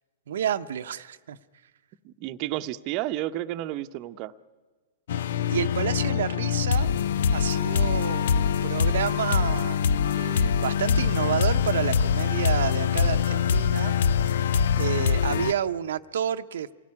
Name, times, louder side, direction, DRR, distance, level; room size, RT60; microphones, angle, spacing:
voice 1, 0.3-1.4 5.5-6.9 7.3-9.8 10.2-13.9 14.2-14.3 14.8-16.7, right 9 dB, 70° right, 9 dB, 0.8 m, -30 dB
voice 2, 2.0-4.3, right 15 dB, 45° right, 10 dB, 0.8 m, -31 dB
sound 1, 5.1-15.5, left 7 dB, 70° left, 0.7 m, -24 dB
26.0 x 17.0 x 9.8 m, 1.4 s
hypercardioid pair, 120°, 0 cm